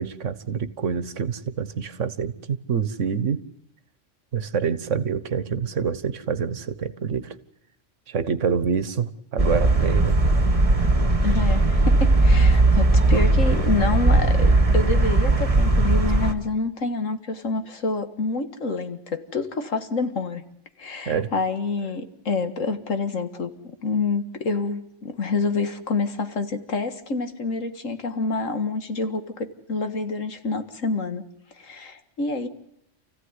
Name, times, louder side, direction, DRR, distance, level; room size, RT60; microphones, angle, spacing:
voice 1, 0.0-3.4 4.3-7.4 8.1-10.2 21.0-21.3, right 6 dB, 75° right, 14 dB, 1.5 m, -26 dB
sound 1, 9.4-16.3, right 2 dB, 30° right, 1.7 m, -18 dB
voice 2, 11.2-20.4 20.8-23.5 23.8-31.3 31.6-32.5, left 3 dB, 90° left, 8 dB, 2.1 m, -27 dB
29.0 x 15.5 x 9.8 m, 0.77 s
omnidirectional pair, 1.3 m